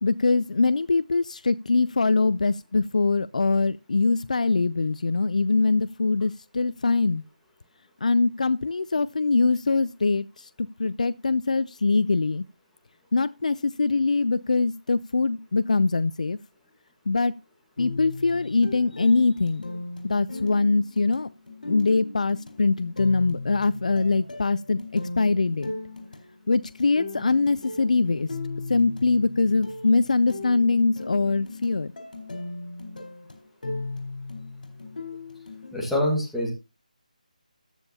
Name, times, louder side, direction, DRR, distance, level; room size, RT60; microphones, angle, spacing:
voice 1, 0.0-7.2 8.0-10.3 10.6-12.4 13.1-16.4 17.1-17.3 17.8-19.6 20.0-21.3 21.7-25.7 26.5-28.3 28.7-31.9, left 3 dB, 60° left, 0.4 m, -23 dB
sound 1, 17.8-35.7, left 2 dB, 80° left, 4.1 m, -37 dB
voice 2, 35.7-36.5, left 1 dB, ahead, 1.4 m, -25 dB
14.0 x 8.8 x 2.8 m
figure-of-eight pair, 175°, 4 cm